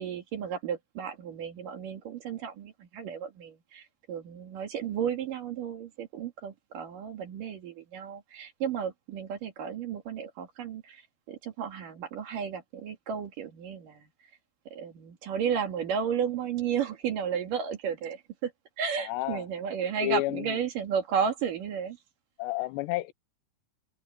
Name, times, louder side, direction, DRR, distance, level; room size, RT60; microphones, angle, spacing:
voice 1, 0.0-11.0 11.3-14.1 14.7-18.5 18.8-22.0, right 7 dB, 55° right, 3.2 m, -33 dB
voice 2, 19.0-19.5 20.0-20.6 22.4-23.1, left 17 dB, 85° left, 2.9 m, -31 dB
open air
omnidirectional pair, 4.9 m